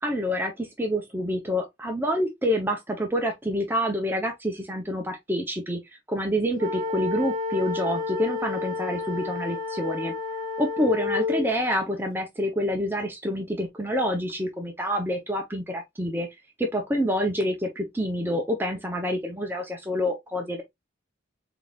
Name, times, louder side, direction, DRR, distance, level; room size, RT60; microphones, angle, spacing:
voice 1, 0.0-5.8 6.1-10.1 10.6-16.3 16.6-20.6, equal, 10° right, 0.7 m, -27 dB
sound 1, 6.6-11.5, left 4 dB, 40° right, 0.8 m, -30 dB
3.8 x 3.8 x 2.3 m
head